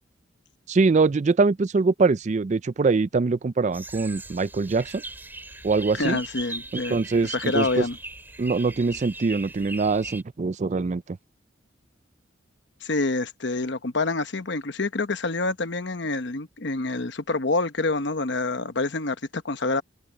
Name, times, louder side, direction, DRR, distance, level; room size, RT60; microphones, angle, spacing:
voice 1, 0.7-5.0 5.6-6.2 6.7-7.8 8.4-11.2, right 4 dB, 35° right, 0.4 m, -23 dB
sound 1, 3.7-10.2, right 2 dB, 10° right, 3.0 m, -39 dB
voice 2, 5.9-7.0 7.2-8.0 12.8-19.8, left 3 dB, 60° left, 1.0 m, -27 dB
head